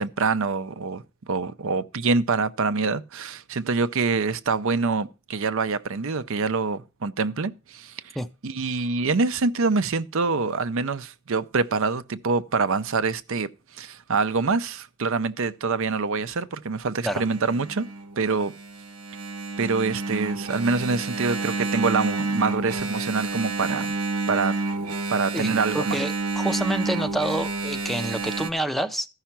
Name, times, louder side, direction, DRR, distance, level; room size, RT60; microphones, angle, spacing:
voice 1, 0.0-7.9 8.4-13.5 13.8-17.8 18.2-18.5 19.6-23.9 24.3-24.5 25.1-26.0, right 4 dB, 65° right, 0.6 m, -25 dB
Engine, 17.1-28.5, right 3 dB, 85° right, 1.1 m, -29 dB
voice 2, 25.3-29.1, right 1 dB, ahead, 0.5 m, -28 dB
14.0 x 5.7 x 5.8 m
head